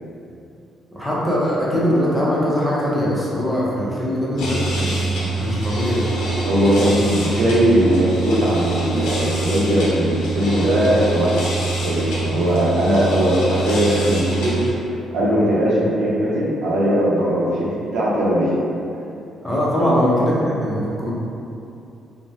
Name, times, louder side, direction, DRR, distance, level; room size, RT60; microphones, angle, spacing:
voice 1, 0.9-6.0 19.4-21.1, equal, 5° left, -7 dB, 0.7 m, -21 dB
sound 1, 4.4-14.7, right 2 dB, 90° left, 0.6 m, -24 dB
voice 2, 6.5-11.3 11.8-14.5 15.1-18.5 19.8-19.9, equal, 80° right, -6 dB, 0.6 m, -19 dB
3.0 x 2.0 x 2.6 m, 2.7 s
cardioid pair, 90°, 0 cm